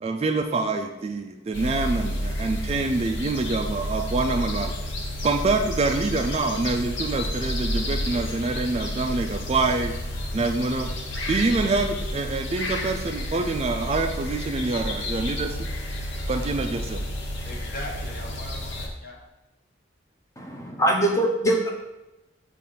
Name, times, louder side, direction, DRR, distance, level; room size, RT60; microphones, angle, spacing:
voice 1, 0.0-4.7 5.2-9.9 10.3-10.9 11.3-15.6 16.3-17.0, right 3 dB, 30° right, 5 dB, 0.3 m, -26 dB
sound 1, 1.5-18.9, left 1 dB, 70° left, 1.0 m, -31 dB
voice 2, 17.4-19.2, left 1 dB, 45° left, -1 dB, 1.0 m, -39 dB
voice 3, 20.4-21.7, right 1 dB, 15° left, 0 dB, 0.7 m, -23 dB
6.9 x 2.5 x 5.5 m, 1.0 s
head